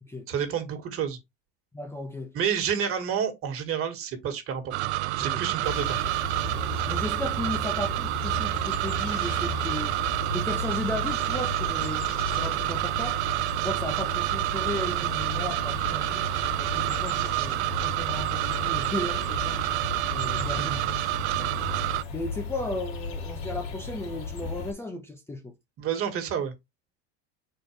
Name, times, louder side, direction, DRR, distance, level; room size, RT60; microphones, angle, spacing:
voice 1, 0.3-1.2 2.3-4.9 5.2-6.0 20.5-20.8 25.8-26.5, right 8 dB, 40° right, 1.9 m, -29 dB
voice 2, 1.7-2.3 5.2-5.4 6.5-10.0 10.3-13.2 13.6-16.3 16.6-19.6 20.1-20.7 21.4-21.6 22.1-25.5, left 2 dB, 10° left, 0.9 m, -35 dB
sound 1, 4.7-22.0, right 19 dB, 85° right, 0.5 m, -28 dB
sound 2, 5.6-24.7, left 4 dB, 65° left, 2.3 m, -36 dB
6.3 x 4.5 x 3.3 m
supercardioid pair, 125°, 33 cm